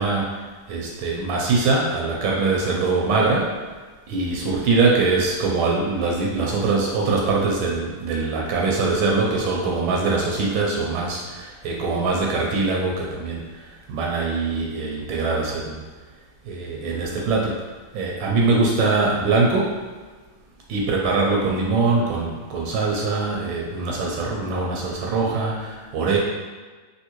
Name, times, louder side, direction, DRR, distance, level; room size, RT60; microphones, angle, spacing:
voice 1, 0.0-3.6 4.1-15.8 16.4-17.7 17.9-19.8 20.7-26.2, right 3 dB, 80° right, -2 dB, 1.3 m, -23 dB
3.5 x 2.6 x 2.9 m, 1.4 s
omnidirectional pair, 2.2 m